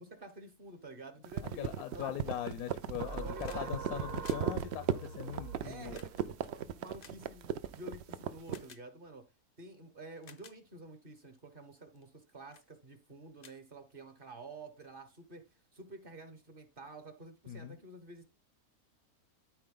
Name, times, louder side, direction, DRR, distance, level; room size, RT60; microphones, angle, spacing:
voice 1, 0.0-1.7 1.9-2.2 3.1-4.3 5.6-9.2 9.6-15.4 15.7-18.3, right 2 dB, 40° right, 1.4 m, -50 dB
sound 1, 1.2-8.7, right 9 dB, 65° right, 0.7 m, -37 dB
voice 2, 1.6-6.0 17.5-17.8, left 11 dB, 80° left, 1.1 m, -40 dB
sound 2, 3.0-3.7 3.9-7.8 8.5-8.8 9.6-9.7 10.1-10.6 11.2-11.4 11.9-12.2 12.5-12.7 13.0-13.1 13.4-14.3 15.5-15.6, left 6 dB, 60° left, 0.4 m, -57 dB
sound 3, 3.0-8.3, right 4 dB, 85° right, 1.7 m, -46 dB
12.5 x 4.3 x 3.8 m
omnidirectional pair, 1.6 m